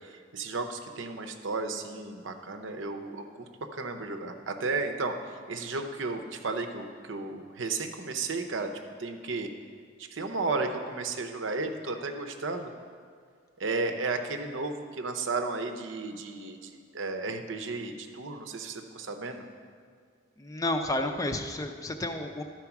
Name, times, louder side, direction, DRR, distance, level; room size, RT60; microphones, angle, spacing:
voice 1, 0.0-3.5 3.7-8.7 9.0-9.5 10.1-12.7 13.6-19.4, right 3 dB, 80° right, 5 dB, 0.8 m, -33 dB
voice 2, 20.4-22.4, left 1 dB, 15° left, 6 dB, 0.4 m, -31 dB
12.0 x 4.6 x 5.9 m, 2.1 s
head